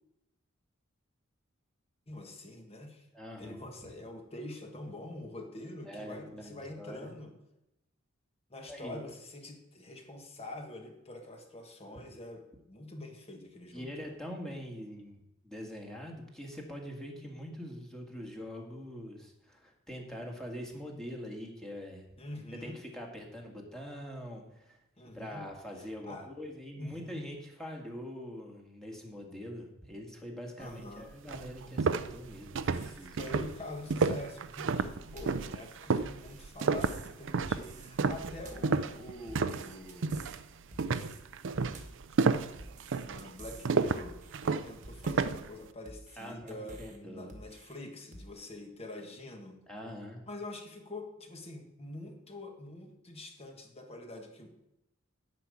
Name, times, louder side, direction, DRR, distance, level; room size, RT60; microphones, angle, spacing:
voice 1, 2.1-3.1 3.4-7.3 8.5-14.1 22.2-22.8 25.0-25.4 25.8-26.3 26.8-27.3 30.6-31.1 32.7-40.1 43.0-49.6 50.3-54.7, left 1 dB, 30° left, 4 dB, 1.5 m, -45 dB
voice 2, 3.1-3.7 5.8-7.1 8.7-9.0 13.7-22.1 22.6-33.4 46.2-47.3 49.7-50.2, equal, 5° left, 0 dB, 1.8 m, -44 dB
sound 1, 30.8-30.9 31.3-39.7 40.0-40.4 40.8-45.5, right 4 dB, 60° right, 0.5 m, -31 dB
sound 2, 35.2-35.5 36.0-37.1 37.4-37.9 38.2-38.7 39.3-40.4 40.7-41.2 41.5-42.0 42.6-43.7 44.0-44.5 44.8-45.3 45.8-47.0 47.3-47.8 48.1-48.3, right 2 dB, 35° right, 1.3 m, -50 dB
10.0 x 5.3 x 8.3 m, 0.86 s
head